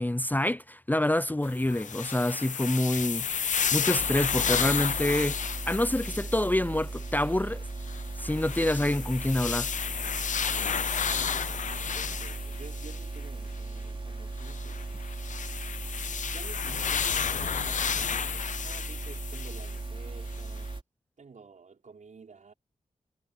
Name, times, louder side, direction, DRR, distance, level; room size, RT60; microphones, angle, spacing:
voice 1, 0.0-5.4 5.7-7.6 8.2-9.7, left 1 dB, 15° left, 0.6 m, -27 dB
sound 1, 1.4-6.5 6.9-7.1 7.8-13.2 14.4-19.8 20.3-20.4, left 7 dB, 75° left, 0.6 m, -32 dB
sound 2, 4.0-20.8, right 3 dB, 45° right, 3.5 m, -37 dB
voice 2, 11.4-15.0 16.2-20.8 21.2-22.5, right 5 dB, 75° right, 4.6 m, -50 dB
cardioid pair, 50°, 13 cm